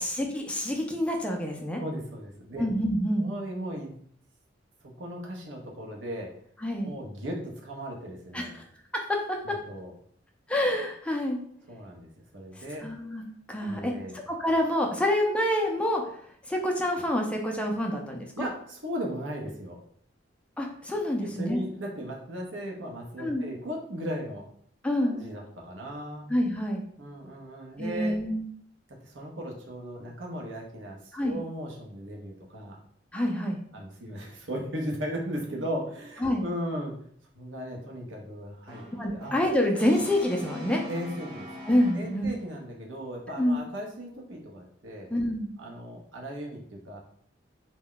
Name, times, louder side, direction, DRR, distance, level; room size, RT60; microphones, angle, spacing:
voice 1, 0.0-1.8 2.6-3.3 6.6-6.9 8.3-8.6 8.9-9.6 10.5-11.4 12.8-13.2 13.5-13.9 14.3-16.0 16.5-18.5 20.6-21.6 23.2-23.4 24.8-25.2 26.3-26.8 27.8-28.4 31.1-31.4 33.1-33.6 36.2-36.5 39.0-40.8 41.7-42.3 43.4-43.6 45.1-45.5, left 1 dB, 5° left, 1 dB, 0.3 m, -27 dB
voice 2, 1.8-2.6 3.2-3.9 5.0-6.3 6.8-8.6 9.4-9.9 11.7-12.9 13.6-14.2 18.4-19.8 21.2-24.4 25.0-26.3 27.0-28.1 28.9-32.8 33.7-37.0 37.3-38.8 39.1-39.3 40.9-41.5 41.9-45.1 45.6-47.0, equal, 80° right, 0 dB, 0.7 m, -37 dB
Brass instrument, 38.7-42.5, left 1 dB, 25° right, 0.8 m, -42 dB
2.2 x 2.0 x 3.8 m, 0.62 s
head